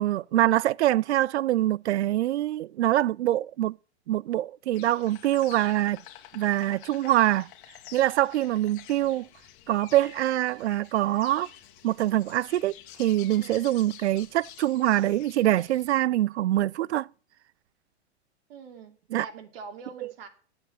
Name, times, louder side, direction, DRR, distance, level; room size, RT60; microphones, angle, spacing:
voice 1, 0.0-3.8 4.1-6.0 6.3-7.5 7.9-9.3 9.7-11.5 11.8-12.7 13.0-17.1 19.1-19.3, right 14 dB, 75° right, 0.5 m, -24 dB
Insect, 4.7-15.9, left 12 dB, 50° left, 1.7 m, -49 dB
voice 2, 13.4-13.7 18.5-20.3, right 5 dB, 60° right, 2.7 m, -44 dB
9.9 x 7.7 x 7.8 m
hypercardioid pair, 125°, 34 cm